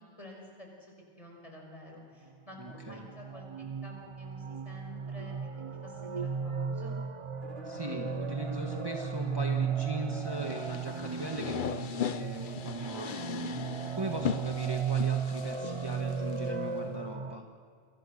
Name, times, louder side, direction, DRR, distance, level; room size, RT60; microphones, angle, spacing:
voice 1, 0.2-3.5 3.8-5.5 5.8-7.0, left 1 dB, 30° left, 0 dB, 5.9 m, -50 dB
voice 2, 2.6-3.0 7.6-17.4, right 1 dB, 20° right, 2 dB, 1.6 m, -39 dB
sound 1, 2.6-17.4, right 6 dB, 35° right, 0.6 m, -35 dB
Bowed string instrument, 7.4-11.6, right 2 dB, 60° right, 4.9 m, -48 dB
sound 2, 10.4-16.5, left 8 dB, 50° left, 0.8 m, -38 dB
28.5 x 23.0 x 6.6 m, 2.2 s
omnidirectional pair, 1.1 m